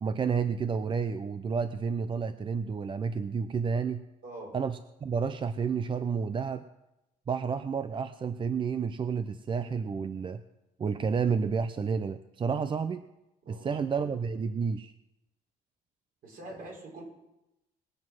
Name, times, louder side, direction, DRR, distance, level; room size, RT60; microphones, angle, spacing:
voice 1, 0.0-4.0 4.5-6.6 7.3-10.4 10.8-13.1 13.5-14.9, right 6 dB, 30° right, 11 dB, 0.6 m, -30 dB
voice 2, 4.2-4.6 13.4-14.1 16.2-17.0, right 1 dB, 55° right, 0 dB, 5.2 m, -45 dB
20.5 x 7.5 x 6.2 m, 0.95 s
cardioid pair, 110°, 17 cm